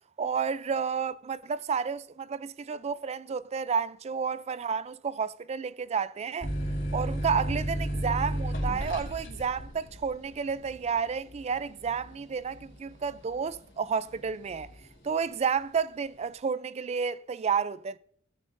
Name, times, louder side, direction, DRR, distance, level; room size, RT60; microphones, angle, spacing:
voice 1, 0.2-6.5 6.9-14.7 15.0-18.0, right 6 dB, 35° right, 0.3 m, -31 dB
sound 1, 6.4-13.7 14.1-14.8, equal, 65° left, 2.9 m, -33 dB
17.0 x 9.1 x 2.6 m
head